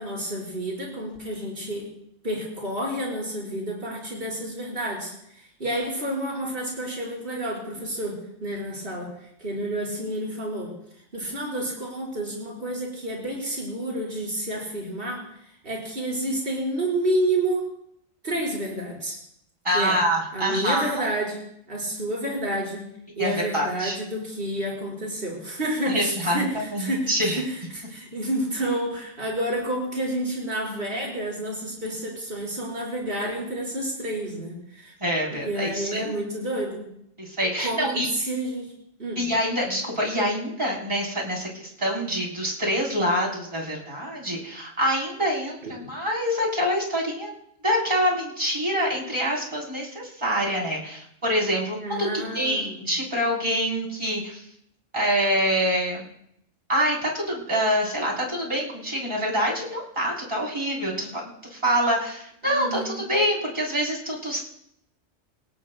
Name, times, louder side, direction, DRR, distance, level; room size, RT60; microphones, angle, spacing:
voice 1, 0.0-1.8 2.2-9.1 9.4-10.7 11.1-15.2 15.6-17.6 18.2-19.2 19.7-20.0 20.3-22.9 23.2-34.9 35.3-36.8 37.6-38.7 39.0-39.2 45.6-45.7 51.8-52.9 62.4-63.0, right 1 dB, 45° right, -4 dB, 5.3 m, -29 dB
voice 2, 19.6-20.9 23.2-24.0 25.9-27.4 35.0-36.2 37.2-38.1 39.2-47.3 47.6-54.4 54.9-56.1 56.7-64.4, equal, 25° right, -3 dB, 4.1 m, -26 dB
28.5 x 17.5 x 2.3 m, 0.74 s
omnidirectional pair, 1.3 m